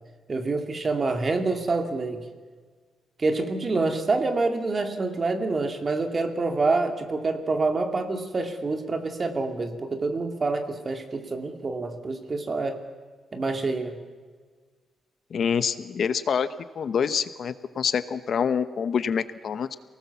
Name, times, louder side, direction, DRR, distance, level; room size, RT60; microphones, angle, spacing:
voice 1, 0.3-2.3 3.2-12.8 13.3-14.0, right 3 dB, 30° right, 6 dB, 2.6 m, -27 dB
voice 2, 15.3-16.5 16.8-19.7, left 7 dB, 55° left, 13 dB, 0.9 m, -26 dB
28.5 x 19.0 x 7.1 m, 1.5 s
cardioid pair, 130°, 0 cm